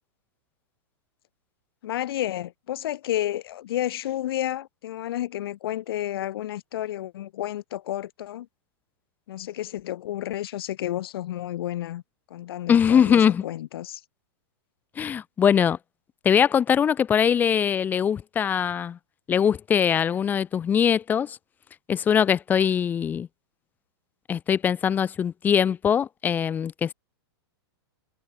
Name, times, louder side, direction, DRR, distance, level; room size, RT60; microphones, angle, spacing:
voice 1, 1.8-8.5 9.3-12.0 12.3-14.0, left 13 dB, 65° left, 0.9 m, -31 dB
voice 2, 12.7-13.4 15.0-15.8 16.2-19.0 19.3-21.4 21.9-23.3 24.3-26.9, left 8 dB, 15° left, 0.5 m, -22 dB
hypercardioid pair, 155°, 14 cm